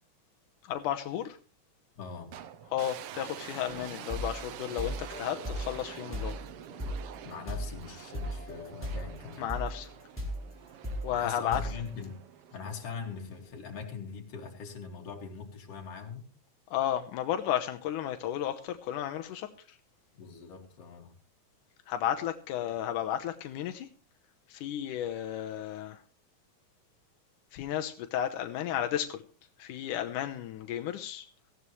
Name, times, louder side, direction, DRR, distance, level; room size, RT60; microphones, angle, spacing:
voice 1, 0.6-1.4 2.7-6.4 9.4-9.9 11.0-11.6 16.7-19.8 21.9-23.9 24.5-26.0 27.5-29.2 29.6-31.3, left 10 dB, 85° left, 2.5 m, -33 dB
voice 2, 2.0-2.3 7.2-9.5 11.1-12.2 12.5-16.3 20.2-21.1, left 5 dB, 50° left, 3.3 m, -42 dB
sound 1, 2.3-13.5, right 10 dB, 75° right, 1.3 m, -47 dB
sound 2, 3.7-9.2 9.5-11.9, equal, 5° left, 4.0 m, -38 dB
18.0 x 15.5 x 3.2 m
omnidirectional pair, 3.5 m